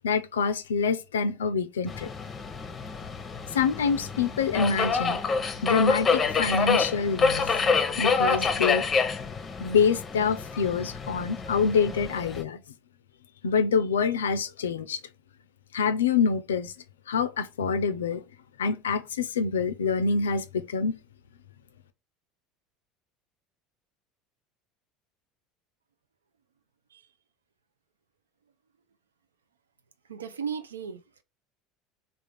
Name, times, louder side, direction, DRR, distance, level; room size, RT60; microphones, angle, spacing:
voice 1, 0.0-2.1 3.5-5.2 5.6-7.6 8.0-8.9 9.6-12.6 13.4-15.0 15.7-16.7 17.1-18.2 18.6-20.9, left 5 dB, 85° left, 0.4 m, -26 dB
Subway metro underground, 1.9-12.4, left 5 dB, 30° left, 0.6 m, -27 dB
voice 2, 30.1-31.2, right 7 dB, 90° right, 0.4 m, -36 dB
3.5 x 2.4 x 3.3 m
hypercardioid pair, 75°, 0 cm